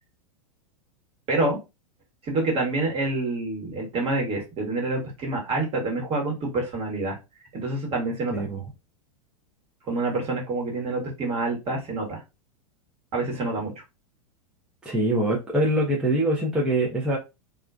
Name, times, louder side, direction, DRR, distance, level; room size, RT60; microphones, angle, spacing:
voice 1, 1.3-1.6 2.2-7.2 7.5-8.4 9.9-12.2 13.1-13.7, right 2 dB, 30° right, -1 dB, 1.1 m, -27 dB
voice 2, 14.8-17.2, right 1 dB, 5° right, -4 dB, 0.5 m, -24 dB
2.4 x 2.2 x 2.4 m, 0.25 s
hypercardioid pair, 115°, 19 cm